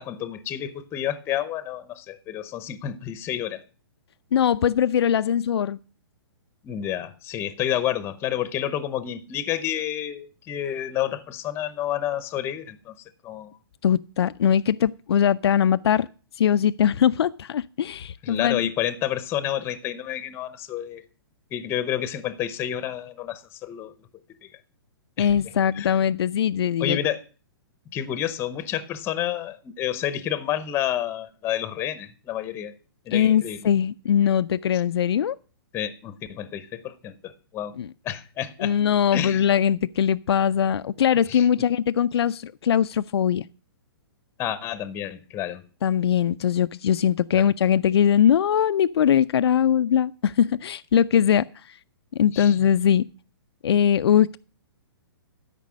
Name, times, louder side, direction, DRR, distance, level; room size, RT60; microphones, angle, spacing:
voice 1, 0.0-3.6 6.6-12.9 13.2-13.6 18.2-21.0 21.5-23.9 24.4-24.5 25.2-25.3 25.7-25.9 26.8-27.2 27.9-32.7 33.1-33.7 35.7-37.7 38.0-38.7 39.1-39.5 41.3-41.5 44.4-45.6 47.3-47.5 52.3-52.6, left 11 dB, 20° left, 0.7 m, -29 dB
voice 2, 4.3-5.8 13.8-16.1 16.4-18.7 25.2-27.0 33.1-35.4 37.8-37.9 38.6-43.4 45.8-51.8 52.2-53.0 53.6-54.4, left 9 dB, 80° left, 0.4 m, -21 dB
12.5 x 5.3 x 6.2 m
hypercardioid pair, 145°, 13 cm